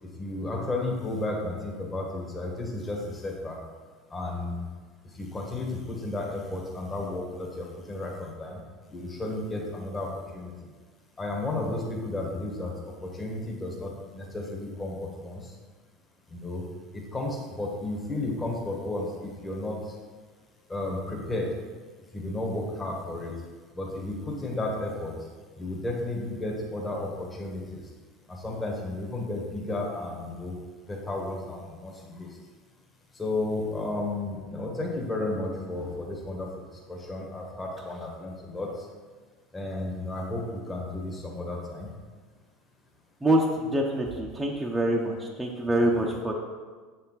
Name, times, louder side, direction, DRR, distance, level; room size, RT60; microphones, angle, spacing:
voice 1, 0.0-3.6 4.1-4.6 5.2-8.6 8.9-10.5 11.2-15.4 16.3-16.6 16.9-19.8 20.7-21.5 22.1-23.4 23.7-25.1 25.6-27.8 28.3-30.6 30.9-32.3 33.1-36.5 36.9-38.7 39.5-41.9, left 2 dB, 20° left, -1 dB, 1.5 m, -33 dB
voice 2, 43.2-46.3, right 1 dB, 10° right, -2 dB, 0.8 m, -25 dB
6.8 x 4.3 x 4.1 m, 1.4 s
hypercardioid pair, 90°, 0 cm